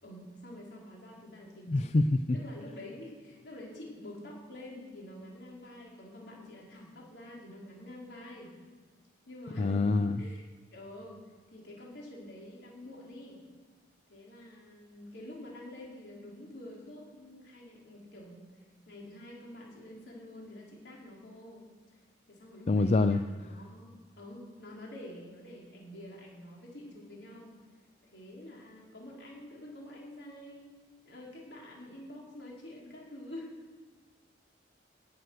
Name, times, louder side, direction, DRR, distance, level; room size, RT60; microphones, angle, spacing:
voice 1, 0.0-1.9 2.3-8.5 9.3-10.4 10.7-11.2 11.5-13.4 14.1-18.5 18.9-21.6 22.3-27.5 28.0-30.7 31.0-33.6, left 1 dB, 70° left, -3 dB, 4.6 m, -47 dB
voice 2, 1.7-2.4 9.6-10.2 22.7-23.2, left 3 dB, 35° left, 10 dB, 0.4 m, -25 dB
18.0 x 7.8 x 6.5 m, 1.5 s
head